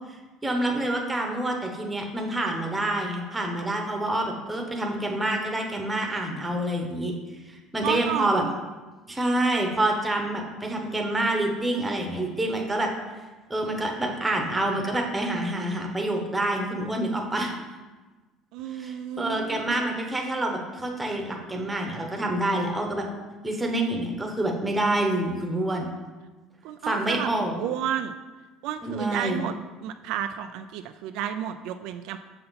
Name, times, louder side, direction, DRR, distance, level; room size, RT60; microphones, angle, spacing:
voice 1, 0.4-7.1 7.7-8.4 9.1-12.9 13.5-17.5 18.7-23.1 23.4-25.9 26.8-27.6 28.8-29.4, right 1 dB, 10° right, 1 dB, 1.0 m, -27 dB
voice 2, 7.8-8.5 18.5-19.8 26.6-27.3 27.6-28.2 28.6-29.5 29.8-32.2, right 10 dB, 70° right, 8 dB, 0.3 m, -31 dB
6.7 x 5.7 x 4.0 m, 1.3 s
cardioid pair, 140°, 0 cm